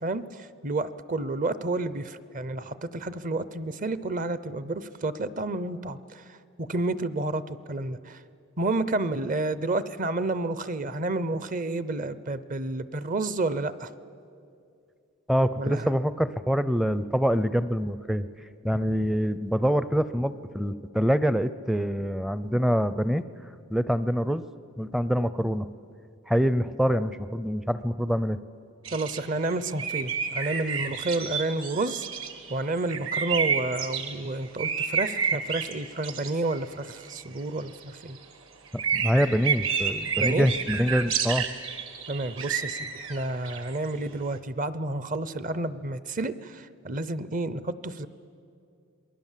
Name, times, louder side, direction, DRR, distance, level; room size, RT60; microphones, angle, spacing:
voice 1, 0.0-8.2 8.6-13.9 15.6-15.9 28.9-32.1 32.5-38.2 40.2-40.5 42.1-48.1, right 2 dB, 40° right, 15 dB, 0.7 m, -30 dB
voice 2, 15.3-18.3 18.6-23.2 23.7-24.4 24.8-25.7 26.3-28.4 38.9-41.5, equal, ahead, 14 dB, 0.5 m, -25 dB
sound 1, 28.9-34.1 34.6-36.6 36.9-38.1 38.7-43.9, right 6 dB, 65° right, 2.0 m, -30 dB
27.5 x 20.5 x 7.4 m, 2.5 s
head